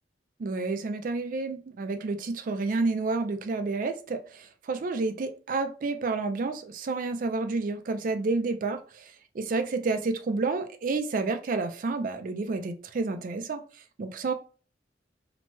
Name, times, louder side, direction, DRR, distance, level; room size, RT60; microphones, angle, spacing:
voice 1, 0.4-13.6 14.0-14.3, right 3 dB, 50° right, 0.4 m, -30 dB
3.0 x 2.1 x 2.9 m
head